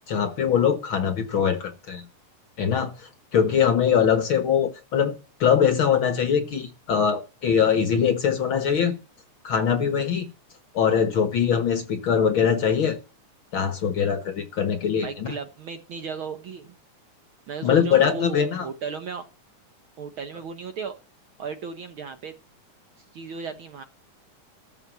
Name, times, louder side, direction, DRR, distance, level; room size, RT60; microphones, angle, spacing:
voice 1, 0.1-2.0 2.6-5.1 5.4-8.9 9.4-10.3 10.7-13.0 13.5-15.3 17.6-18.7, left 7 dB, 55° left, 1.5 m, -22 dB
voice 2, 15.0-16.7 17.5-19.3 20.0-21.0 21.4-22.3 23.1-23.8, right 5 dB, 65° right, 1.3 m, -35 dB
14.0 x 5.1 x 8.0 m
omnidirectional pair, 3.5 m